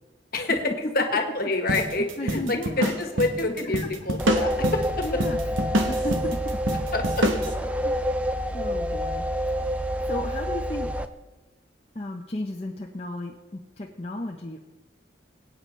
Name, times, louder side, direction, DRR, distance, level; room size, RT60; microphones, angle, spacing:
voice 1, 0.9-4.5 5.9-6.0 6.9-7.3 8.5-8.7, left 2 dB, 50° left, 4 dB, 1.5 m, -27 dB
sound 1, 1.7-7.5, right 1 dB, 85° right, 1.2 m, -27 dB
voice 2, 2.0-2.9 3.6-3.7 5.0-5.4 5.9-6.8 7.6-8.1 8.5-9.2 9.6-9.8 10.1-10.9 11.9-14.6, left 1 dB, 30° left, -1 dB, 0.7 m, -34 dB
sound 2, 4.2-11.1, equal, 5° right, 0.4 m, -28 dB
21.0 x 9.0 x 3.2 m, 1.1 s
head